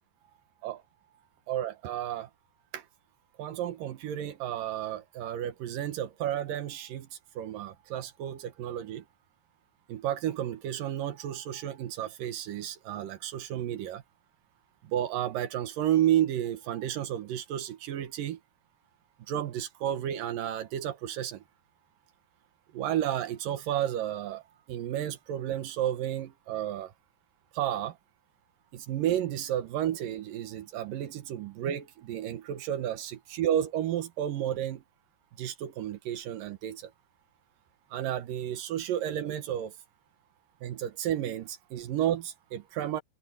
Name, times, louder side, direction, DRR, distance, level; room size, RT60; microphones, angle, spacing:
voice 1, 1.5-2.3 2.7-2.8 3.4-7.1 7.4-9.0 9.9-14.0 14.9-18.4 19.3-21.4 22.7-24.4 24.7-26.9 27.5-27.9 28.7-34.8 35.4-36.8 37.9-39.7 40.6-43.0, right 11 dB, 65° right, 2.3 m, -32 dB
omnidirectional pair, 5.4 m